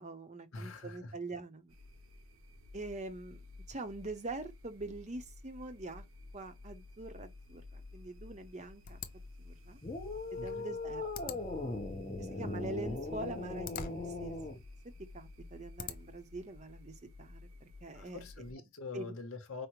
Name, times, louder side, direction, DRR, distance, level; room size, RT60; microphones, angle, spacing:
voice 1, 0.0-1.8 2.7-3.4 3.7-6.0 6.3-9.0 9.4-9.8 10.3-11.4 12.2-14.3 15.1-18.2 18.9-19.1, right 2 dB, 30° right, 0.6 m, -44 dB
voice 2, 0.5-1.1 10.4-10.7 17.9-19.7, left 3 dB, 70° left, 0.9 m, -44 dB
sound 1, 1.7-18.5, left 2 dB, 70° right, 0.7 m, -53 dB
sound 2, 8.9-16.3, left 7 dB, 40° left, 0.5 m, -49 dB
sound 3, 9.8-14.6, left 2 dB, 25° left, 0.8 m, -39 dB
4.9 x 2.0 x 2.9 m
head